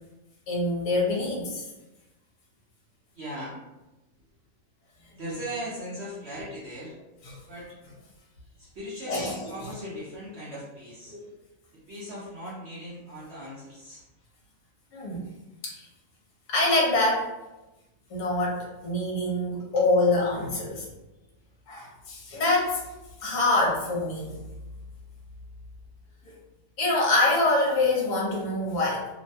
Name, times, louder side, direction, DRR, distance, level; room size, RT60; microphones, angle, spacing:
voice 1, 0.5-1.6 7.3-7.4 9.1-9.5 14.9-15.2 15.6-15.9 16.5-17.3 18.1-20.9 21.7-22.8 23.2-24.4 26.8-29.1, left 2 dB, 60° left, -3 dB, 1.2 m, -25 dB
voice 2, 3.1-3.6 5.1-7.0 7.5-7.7 8.6-11.2 11.7-14.0 19.6-19.7, equal, 60° right, -7 dB, 0.7 m, -38 dB
3.0 x 2.2 x 2.6 m, 1.0 s
omnidirectional pair, 1.9 m